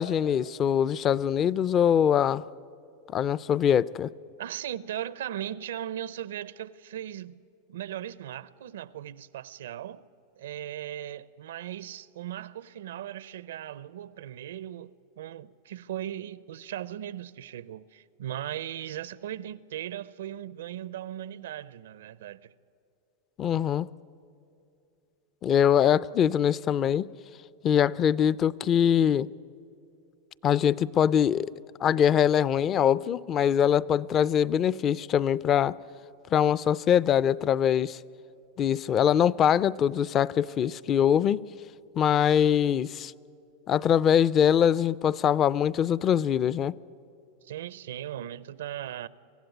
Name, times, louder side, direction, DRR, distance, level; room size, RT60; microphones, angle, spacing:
voice 1, 0.0-2.4 3.1-4.1 23.4-23.9 25.4-27.1 27.6-29.3 30.4-31.5 31.8-35.8 36.3-38.0 38.6-41.5 42.0-43.1 43.7-46.7, left 9 dB, 30° left, 0.5 m, -23 dB
voice 2, 4.4-7.4 7.7-10.0 10.4-22.5 47.4-49.1, right 11 dB, 85° right, 0.6 m, -38 dB
24.5 x 16.0 x 9.3 m
supercardioid pair, 130°, 0 cm